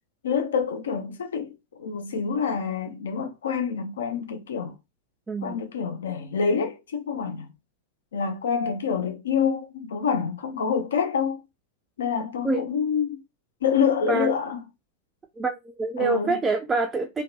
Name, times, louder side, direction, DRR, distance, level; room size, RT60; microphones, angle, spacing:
voice 1, 0.2-1.5 1.8-4.7 5.4-7.5 8.1-11.4 12.0-13.2 13.6-14.6 16.0-16.3, left 6 dB, 65° left, 0.4 m, -27 dB
voice 2, 15.4-17.2, right 3 dB, 15° right, 0.3 m, -26 dB
2.5 x 2.1 x 2.4 m
figure-of-eight pair, 90°, 0 cm